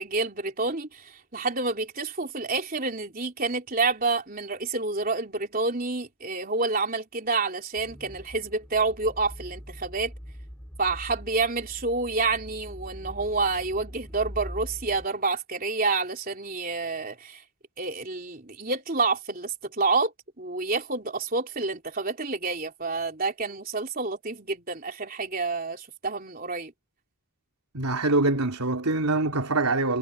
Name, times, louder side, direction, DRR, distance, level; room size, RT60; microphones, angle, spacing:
voice 1, 0.0-10.1 10.8-17.4 17.8-26.7, right 3 dB, 40° right, 3.7 m, -28 dB
sound 1, 7.8-15.1, equal, 5° left, 3.9 m, -42 dB
voice 2, 27.7-30.0, right 2 dB, 85° right, 3.4 m, -24 dB
head